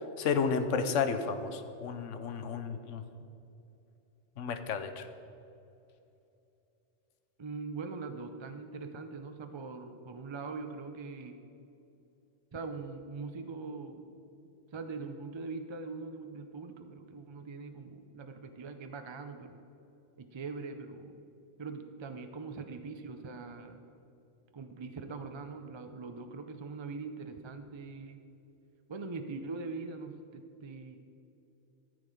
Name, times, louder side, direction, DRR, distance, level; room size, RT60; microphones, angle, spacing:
voice 1, 0.0-3.1 4.4-5.1, left 5 dB, 90° left, 9 dB, 1.1 m, -32 dB
voice 2, 7.4-11.4 12.5-14.1 14.7-19.6 20.2-21.2 21.6-23.8 24.5-28.2 28.9-31.0, right 4 dB, 40° right, 7 dB, 0.4 m, -42 dB
13.0 x 6.9 x 5.2 m, 2.8 s
omnidirectional pair, 1.2 m